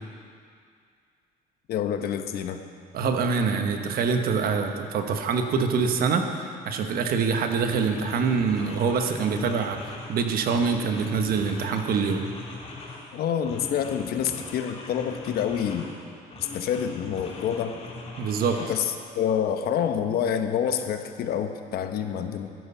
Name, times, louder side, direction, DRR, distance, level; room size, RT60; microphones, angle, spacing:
voice 1, 1.7-2.6 13.1-15.9 16.5-17.8 18.7-22.5, left 8 dB, 65° left, 7 dB, 1.0 m, -27 dB
voice 2, 2.9-9.8 10.1-12.3 18.2-18.6, right 5 dB, 60° right, 5 dB, 1.2 m, -25 dB
sound 1, 7.1-7.2 7.6-10.2 10.5-13.1 13.4-15.9 16.3-18.7, left 3 dB, 35° left, 3.1 m, -41 dB
12.5 x 11.0 x 5.6 m, 2.2 s
cardioid pair, 110°, 17 cm